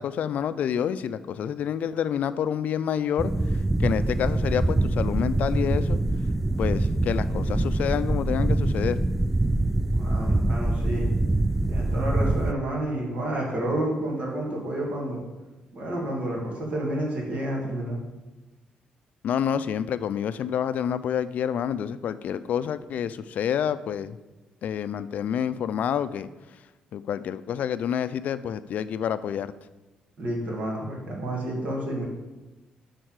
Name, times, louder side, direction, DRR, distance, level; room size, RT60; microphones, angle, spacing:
voice 1, 0.0-3.3 3.8-6.0 6.6-9.0 19.2-24.2 24.6-26.3 26.9-29.5, left 9 dB, 65° left, 14 dB, 0.4 m, -28 dB
sound 1, 3.2-12.5, right 2 dB, 10° right, 0.3 m, -24 dB
voice 2, 9.9-11.1 11.7-15.2 15.7-18.0 30.2-32.1, right 1 dB, 55° right, -2 dB, 2.2 m, -30 dB
7.9 x 4.1 x 6.5 m, 1.1 s
cardioid pair, 100°, 3 cm